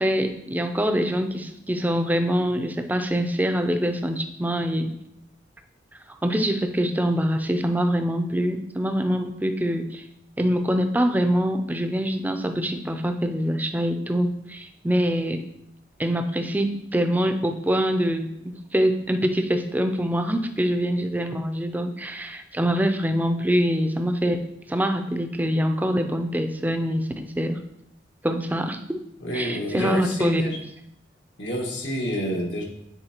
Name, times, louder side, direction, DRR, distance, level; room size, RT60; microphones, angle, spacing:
voice 1, 0.0-4.9 6.2-10.0 10.4-15.4 16.0-27.6 28.2-29.0 29.3-30.4, equal, 10° right, 6 dB, 0.4 m, -24 dB
voice 2, 29.2-30.6 31.4-32.6, equal, 85° left, 0 dB, 1.5 m, -28 dB
9.7 x 4.3 x 2.9 m, 0.78 s
head